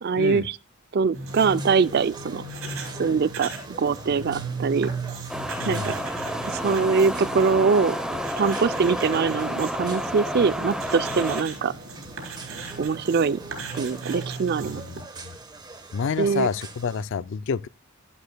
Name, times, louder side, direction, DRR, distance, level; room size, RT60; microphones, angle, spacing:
voice 1, 0.0-0.6 0.9-2.4 3.0-3.5 3.8-4.9 5.7-5.9 6.5-8.0 8.3-11.7 12.8-13.4 13.7-14.8 16.2-16.5, right 5 dB, 45° right, 0.4 m, -23 dB
sound 1, 1.1-15.0, right 3 dB, 70° right, 4.1 m, -37 dB
sound 2, 1.3-17.0, right 3 dB, 20° right, 1.1 m, -44 dB
sound 3, 5.3-11.4, equal, 5° right, 0.8 m, -30 dB
voice 2, 5.6-6.0 14.7-15.3 15.9-17.7, left 6 dB, 55° left, 0.4 m, -29 dB
11.5 x 11.5 x 2.2 m
head